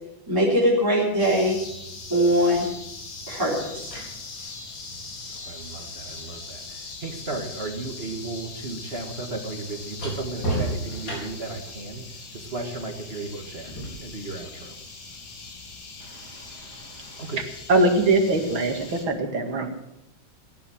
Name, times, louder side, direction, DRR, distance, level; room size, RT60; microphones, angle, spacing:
voice 1, 0.3-1.6 2.1-2.7 3.3-4.0, equal, 10° right, -7 dB, 4.4 m, -21 dB
sound 1, 1.2-19.1, left 3 dB, 85° left, 3.1 m, -41 dB
sound 2, 3.6-7.6 7.9-11.6 13.7-13.9, right 1 dB, 70° left, 5.2 m, -35 dB
voice 2, 5.3-12.0 12.3-13.7 14.0-14.8 17.2-17.4, right 3 dB, 35° right, 4 dB, 1.7 m, -35 dB
voice 3, 16.1-16.7 16.9-17.2 17.7-19.7, right 2 dB, 80° right, 4 dB, 2.9 m, -23 dB
17.0 x 10.5 x 7.6 m, 0.87 s
omnidirectional pair, 2.1 m